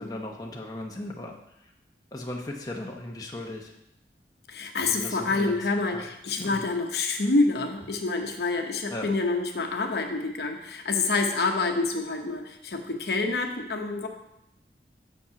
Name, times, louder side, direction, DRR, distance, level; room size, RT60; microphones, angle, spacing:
voice 1, 0.0-1.3 2.1-3.7 4.9-5.6 5.9-6.0 6.4-6.6 8.9-9.1, left 1 dB, 20° left, -1 dB, 0.8 m, -37 dB
voice 2, 4.5-14.1, left 3 dB, 65° left, 4 dB, 0.9 m, -27 dB
7.0 x 5.3 x 5.7 m, 0.83 s
head